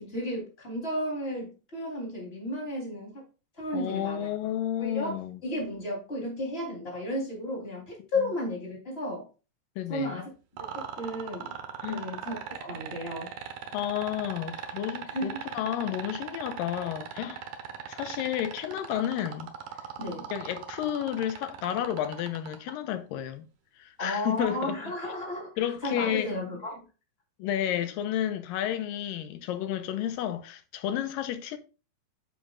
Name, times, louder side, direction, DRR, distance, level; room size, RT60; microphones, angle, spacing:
voice 1, 0.0-3.2 3.6-4.3 4.8-5.2 5.4-9.3 9.9-10.3 10.7-11.5 11.9-12.3 12.6-13.3 15.1-15.4 20.0-20.3 24.0-26.8, left 1 dB, 15° left, 3.6 m, -33 dB
voice 2, 3.7-5.4 8.0-8.3 9.8-10.2 11.8-12.0 13.7-17.4 17.9-19.5 20.3-23.5 23.8-24.9 25.6-26.3 27.4-31.6, left 11 dB, 80° left, 2.5 m, -31 dB
sound 1, 10.6-22.7 24.4-24.5, right 10 dB, 65° right, 2.1 m, -38 dB
9.6 x 7.7 x 2.5 m
omnidirectional pair, 4.1 m